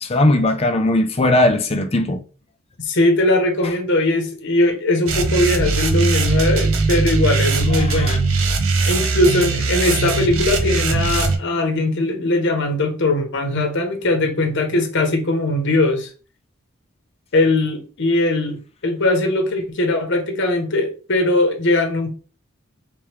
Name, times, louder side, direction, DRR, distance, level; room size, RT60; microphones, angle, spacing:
voice 1, 0.0-2.2 7.7-8.2, left 1 dB, 30° left, 0.5 m, -18 dB
voice 2, 2.8-8.3 8.9-16.1 17.3-22.1, left 2 dB, 55° left, 0.8 m, -20 dB
sound 1, 5.1-11.4, right 3 dB, 65° right, 0.7 m, -20 dB
3.3 x 3.2 x 3.2 m
head